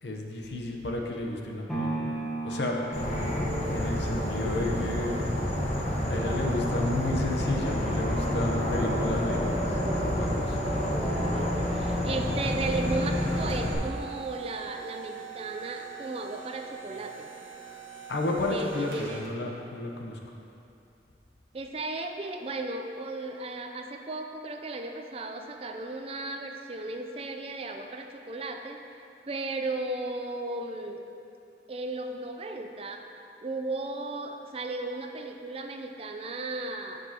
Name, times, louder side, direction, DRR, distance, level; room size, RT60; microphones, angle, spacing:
voice 1, 0.0-2.1 2.4-3.1 3.7-5.3 6.1-10.6 18.1-20.2, left 2 dB, 75° left, 1 dB, 0.8 m, -32 dB
sound 1, 1.7-9.8 10.3-10.4, right 2 dB, ahead, 1.1 m, -39 dB
Insect / Frog, 2.9-13.7, left 1 dB, 40° left, 1.3 m, -28 dB
voice 2, 10.9-17.3 18.5-19.3 21.5-28.8 29.3-31.0 31.7-33.0 33.4-37.0, right 2 dB, 35° right, 5 dB, 0.4 m, -35 dB
sound 2, 12.3-19.5, right 8 dB, 75° right, 1.5 m, -43 dB
13.5 x 5.3 x 2.9 m, 2.7 s
head